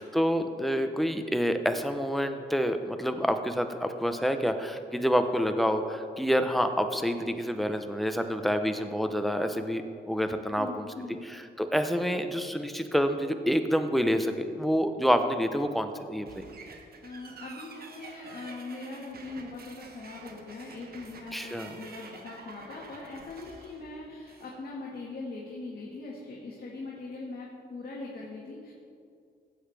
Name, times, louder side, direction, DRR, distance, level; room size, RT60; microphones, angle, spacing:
voice 1, 0.0-10.9 11.3-16.5 21.3-21.7, equal, ahead, 7 dB, 0.7 m, -28 dB
voice 2, 10.6-11.2 17.0-28.7, left 3 dB, 60° left, -4 dB, 1.6 m, -41 dB
sound 1, 16.2-24.6, right 4 dB, 55° right, 1.1 m, -48 dB
14.5 x 7.9 x 3.4 m, 2.3 s
cardioid pair, 95°, 18 cm